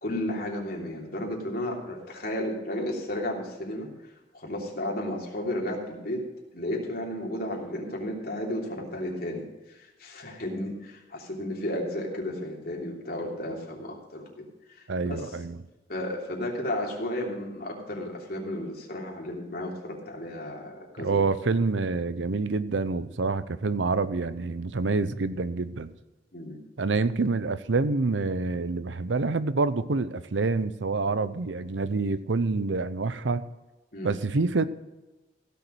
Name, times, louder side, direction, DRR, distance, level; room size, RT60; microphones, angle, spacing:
voice 1, 0.0-3.9 4.3-6.2 6.5-15.3 15.9-21.2 26.3-26.6 33.9-34.1, left 1 dB, 55° left, -2 dB, 3.1 m, -33 dB
voice 2, 14.9-15.6 21.0-25.9 26.8-33.4 34.0-34.6, right 3 dB, 85° right, 14 dB, 0.7 m, -27 dB
16.0 x 7.0 x 6.3 m, 1.1 s
head